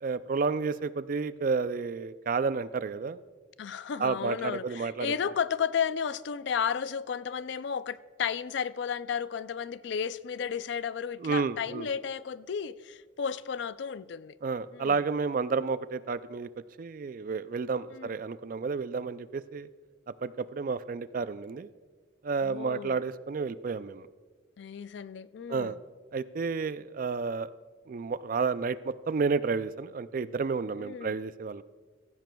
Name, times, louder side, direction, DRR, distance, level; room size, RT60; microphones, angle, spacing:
voice 1, 0.0-3.2 4.0-5.1 11.2-11.9 14.4-16.5 16.8-19.7 20.2-21.7 22.2-24.1 25.5-25.8 26.1-27.5 27.9-31.6, right 4 dB, 45° right, 0.3 m, -31 dB
voice 2, 3.6-14.4 14.7-15.0 17.9-18.1 22.4-23.0 24.6-25.7 30.8-31.1, left 7 dB, 60° left, 0.4 m, -33 dB
15.5 x 15.0 x 2.3 m
head